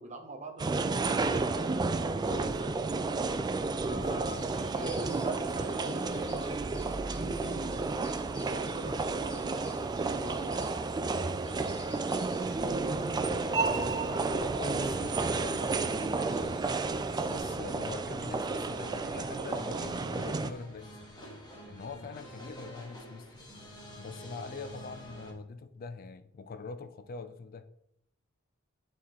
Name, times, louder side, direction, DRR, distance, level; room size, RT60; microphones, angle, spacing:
voice 1, 0.0-2.8 3.8-6.5 7.0-8.1 8.5-10.7, right 2 dB, 35° right, 5 dB, 1.0 m, -42 dB
sound 1, 0.6-20.5, right 3 dB, 20° right, 0.3 m, -32 dB
voice 2, 3.9-4.5 13.3-16.6 17.2-21.0 21.6-23.3 24.0-27.6, left 4 dB, 45° left, 10 dB, 0.4 m, -44 dB
sound 2, 4.2-17.4, left 1 dB, 5° left, 1.4 m, -54 dB
sound 3, 12.4-25.3, equal, 20° left, 1.6 m, -49 dB
9.6 x 4.3 x 3.7 m, 0.76 s
head